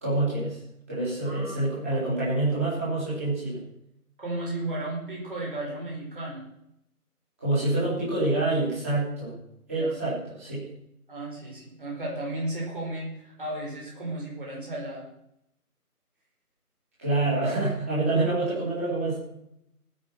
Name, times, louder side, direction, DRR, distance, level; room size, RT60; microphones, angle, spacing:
voice 1, 0.0-0.6 0.9-3.6 7.4-9.3 9.7-10.6 17.0-19.2, right 2 dB, 10° right, -10 dB, 3.3 m, -26 dB
voice 2, 1.2-1.6 1.9-2.1 4.2-6.5 9.8-9.9 11.1-15.1, right 1 dB, 35° right, -3 dB, 4.7 m, -34 dB
19.0 x 6.4 x 6.0 m, 0.77 s
figure-of-eight pair, 170°, 46 cm